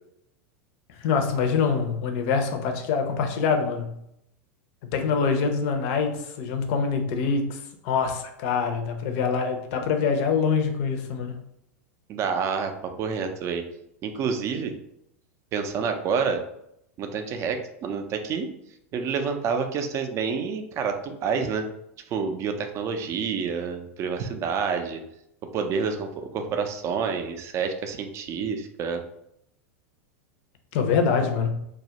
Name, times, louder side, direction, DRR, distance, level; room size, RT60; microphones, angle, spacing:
voice 1, 1.0-4.0 4.8-11.3 30.7-31.7, left 5 dB, 55° left, 5 dB, 0.5 m, -25 dB
voice 2, 12.1-13.6 14.0-14.7 15.5-16.4 17.0-18.5 18.9-21.7 22.1-25.0 25.5-29.0, right 6 dB, 35° right, 6 dB, 0.4 m, -28 dB
2.2 x 2.0 x 2.8 m, 0.78 s
hypercardioid pair, 100°, 8 cm